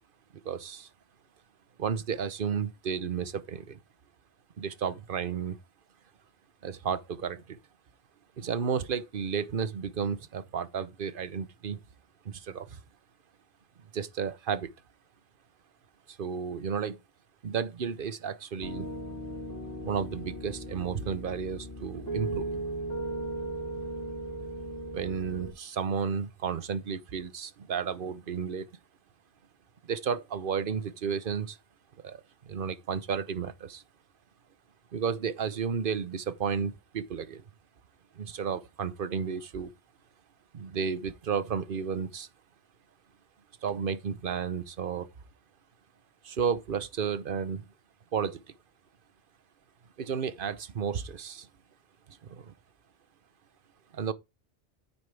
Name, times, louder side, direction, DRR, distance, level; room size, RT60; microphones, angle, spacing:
voice 1, 0.4-0.9 1.8-3.8 4.6-5.6 6.6-7.6 8.4-11.8 12.2-12.8 13.9-14.7 16.1-17.0 17.4-18.9 19.8-22.6 24.9-28.7 29.8-31.6 32.0-33.8 34.9-37.4 38.1-39.7 40.5-42.3 43.6-45.1 46.2-47.6 48.1-48.4 50.0-51.5 52.1-52.5 53.9-54.1, right 6 dB, 55° right, 1.0 m, -32 dB
Piano, 18.6-25.5, right 2 dB, 20° left, 3.5 m, -37 dB
9.7 x 8.2 x 3.4 m
omnidirectional pair, 1.1 m